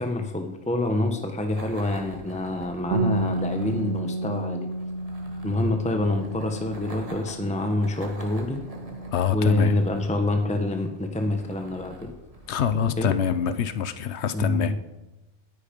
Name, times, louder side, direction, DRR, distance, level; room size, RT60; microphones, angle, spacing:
voice 1, 0.0-4.7 5.4-8.6 9.3-12.1 13.0-13.1 14.3-14.8, left 2 dB, 5° left, 5 dB, 1.1 m, -26 dB
sound 1, 1.5-13.7, right 1 dB, 35° right, 2.0 m, -45 dB
Bass guitar, 2.9-7.6 7.9-9.2, right 2 dB, 85° right, 1.9 m, -31 dB
voice 2, 9.1-9.8 12.5-14.7, left 8 dB, 80° left, 12 dB, 1.1 m, -25 dB
17.5 x 9.9 x 5.3 m, 1.0 s
omnidirectional pair, 1.1 m